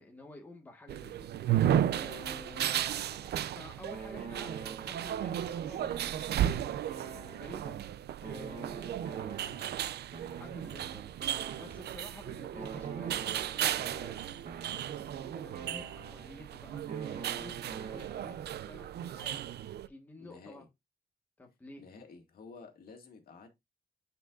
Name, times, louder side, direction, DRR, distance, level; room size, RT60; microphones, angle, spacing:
voice 1, 0.0-2.9 3.5-9.6 10.4-11.1 11.5-14.2 15.3-16.9 17.3-20.7 21.4-21.8, left 2 dB, 10° left, 1.4 m, -51 dB
sound 1, 0.9-19.9, right 11 dB, 80° right, 0.5 m, -35 dB
sound 2, 2.0-3.6 3.9-7.9 8.2-12.1 12.5-16.5 16.9-18.7, right 5 dB, 55° right, 1.3 m, -47 dB
voice 2, 20.2-20.7 21.8-23.5, left 4 dB, 60° left, 2.1 m, -51 dB
9.8 x 5.5 x 2.5 m
wide cardioid pair, 170°, 17 cm